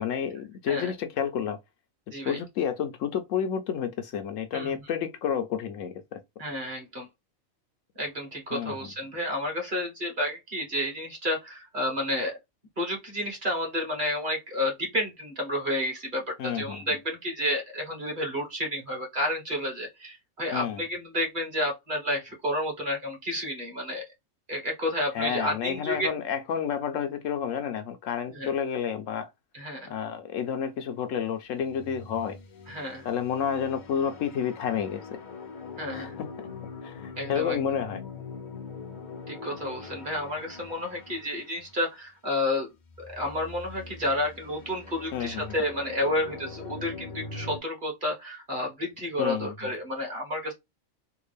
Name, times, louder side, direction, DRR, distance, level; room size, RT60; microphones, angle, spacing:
voice 1, 0.0-1.6 2.2-6.2 8.5-8.9 16.4-16.8 20.5-20.8 25.1-29.3 29.9-32.4 33.0-35.2 35.9-36.3 36.8-38.0 45.1-45.5 49.2-49.5, left 8 dB, 70° left, 0.9 m, -30 dB
voice 2, 2.1-2.4 4.5-4.8 6.4-7.1 7.9-12.4 12.8-24.0 24.5-26.1 28.3-28.5 29.5-29.9 32.7-33.1 35.8-36.1 37.2-37.6 39.3-42.7 43.0-50.5, left 1 dB, 40° right, 1.5 m, -31 dB
sound 1, 31.6-41.8 42.8-47.6, left 4 dB, 55° left, 0.5 m, -43 dB
3.5 x 2.3 x 3.3 m
omnidirectional pair, 1.4 m